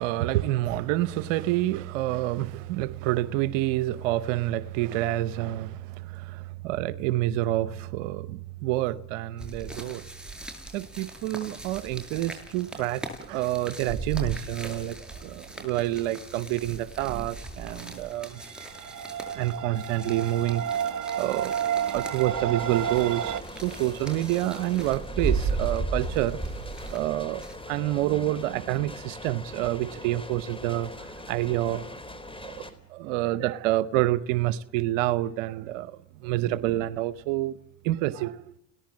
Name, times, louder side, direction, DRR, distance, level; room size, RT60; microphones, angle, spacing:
voice 1, 0.0-10.0 10.7-18.4 19.3-20.9 21.2-21.5 21.9-26.4 26.9-31.8 32.4-32.6 32.9-37.6 37.8-38.5, right 15 dB, 85° right, 0.9 m, -28 dB
sound 1, 9.4-27.6, right 3 dB, ahead, 7.9 m, -37 dB
sound 2, 18.4-23.4, right 9 dB, 55° right, 1.3 m, -31 dB
sound 3, 22.3-32.7, left 1 dB, 15° left, 4.2 m, -42 dB
29.0 x 18.5 x 7.5 m
hypercardioid pair, 60°, 37 cm